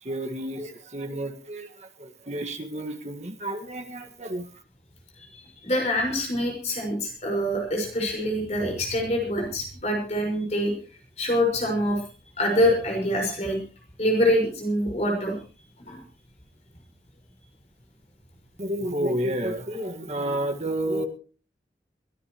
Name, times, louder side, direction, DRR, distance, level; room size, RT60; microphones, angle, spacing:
voice 1, 0.0-4.5 18.6-21.1, right 1 dB, 40° right, 4 dB, 2.0 m, -30 dB
voice 2, 5.6-10.7 11.2-12.0 12.4-13.6 14.0-15.3 15.9-16.0, equal, 40° left, 1 dB, 5.6 m, -25 dB
22.5 x 18.0 x 3.2 m, 0.38 s
head